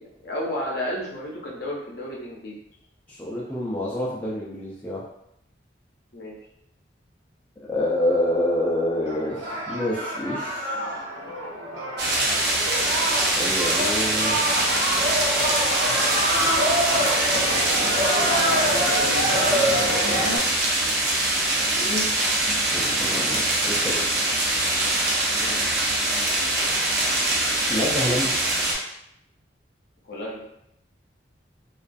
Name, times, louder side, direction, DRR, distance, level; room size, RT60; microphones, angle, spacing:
voice 1, 0.0-2.5 6.1-6.4 21.5-22.0 22.5-23.0 25.4-25.6 30.0-30.4, left 1 dB, 55° left, -3 dB, 0.6 m, -33 dB
voice 2, 3.1-5.0 7.7-10.8 13.4-14.4 17.5-18.9 22.7-24.1 27.7-28.3, left 1 dB, 10° left, -7 dB, 0.4 m, -28 dB
sound 1, 9.0-20.4, equal, 85° right, 1.0 m, -26 dB
sound 2, 12.0-28.7, right 1 dB, 55° right, 0.5 m, -23 dB
2.3 x 2.3 x 2.5 m, 0.78 s
head